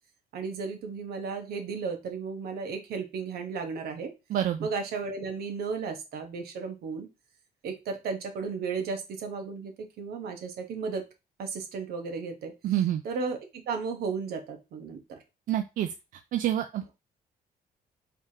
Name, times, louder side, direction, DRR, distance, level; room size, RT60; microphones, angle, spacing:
voice 1, 0.3-4.1 4.6-7.1 7.6-11.0 11.4-12.5 13.0-13.4 13.7-15.2, right 5 dB, 75° right, 5 dB, 1.2 m, -34 dB
voice 2, 4.3-4.7 12.6-13.0 15.5-15.9 16.3-16.9, right 11 dB, 60° right, 7 dB, 0.4 m, -27 dB
4.8 x 3.4 x 2.8 m, 0.26 s
cardioid pair, 155°, 16 cm